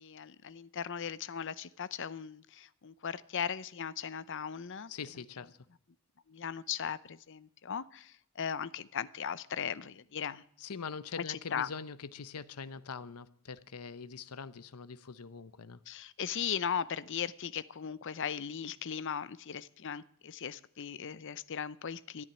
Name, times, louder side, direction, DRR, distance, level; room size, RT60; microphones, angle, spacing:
voice 1, 0.0-4.9 6.3-10.4 11.3-11.7 15.9-22.2, left 7 dB, 55° left, 0.6 m, -38 dB
voice 2, 4.9-5.6 10.6-15.8, left 5 dB, 90° left, 0.8 m, -43 dB
13.0 x 10.5 x 9.7 m
head